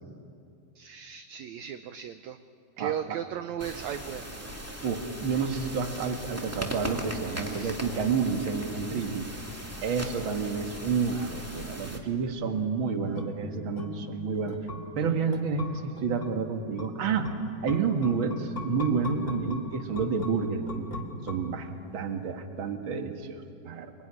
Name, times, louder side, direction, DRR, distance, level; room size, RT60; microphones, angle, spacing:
voice 1, 0.8-2.4 2.8-4.5 7.4-7.8 10.1-10.4, right 9 dB, 70° right, 9 dB, 1.8 m, -37 dB
voice 2, 2.8-3.2 4.8-9.3 9.8-14.6 15.0-17.3 17.6-20.9 21.2-23.9, right 5 dB, 45° right, 5 dB, 2.0 m, -30 dB
sound 1, 3.6-12.0, equal, 5° right, 1.6 m, -39 dB
sound 2, 12.4-21.9 22.2-22.3, left 1 dB, 25° left, 2.1 m, -40 dB
26.5 x 21.5 x 9.9 m, 2.5 s
omnidirectional pair, 3.9 m